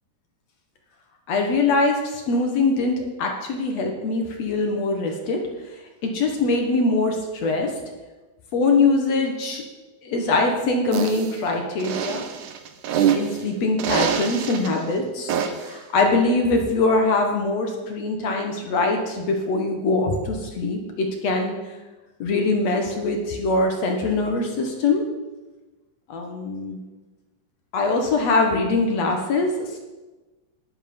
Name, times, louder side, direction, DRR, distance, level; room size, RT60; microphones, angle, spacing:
voice 1, 1.3-5.4 6.0-7.7 8.5-9.6 10.0-12.2 13.1-15.4 15.6-21.6 22.2-25.0 26.1-26.8 27.7-29.8, left 3 dB, 60° left, 3 dB, 2.1 m, -22 dB
sound 1, 10.9-11.3 11.8-13.4 13.8-14.7 15.3-15.7, right 9 dB, 70° right, 2.2 m, -24 dB
12.5 x 10.0 x 5.3 m, 1.2 s
omnidirectional pair, 4.1 m